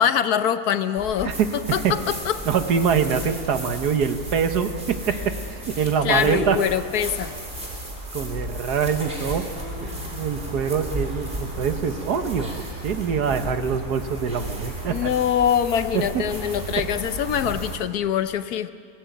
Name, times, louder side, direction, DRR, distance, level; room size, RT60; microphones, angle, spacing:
voice 1, 0.0-2.4 6.0-7.3 14.9-18.7, left 9 dB, 70° left, 12 dB, 1.3 m, -24 dB
sound 1, 1.0-17.8, equal, 35° right, 3.9 m, -33 dB
voice 2, 2.5-5.3 5.8-6.6 8.1-9.5 9.8-12.5 12.8-15.1 15.9-16.2, right 7 dB, 75° right, 8 dB, 1.7 m, -24 dB
22.5 x 18.5 x 9.2 m, 2.3 s
omnidirectional pair, 1.8 m